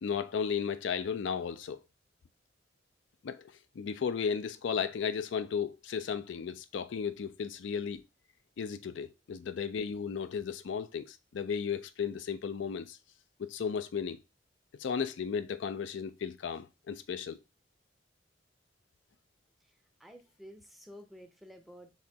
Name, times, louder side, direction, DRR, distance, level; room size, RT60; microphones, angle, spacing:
voice 1, 0.0-1.8 3.2-8.0 8.6-13.0 13.4-14.2 14.8-17.4, left 6 dB, 75° left, 0.4 m, -34 dB
voice 2, 19.6-21.9, equal, ahead, 0.5 m, -52 dB
4.3 x 2.9 x 3.4 m
head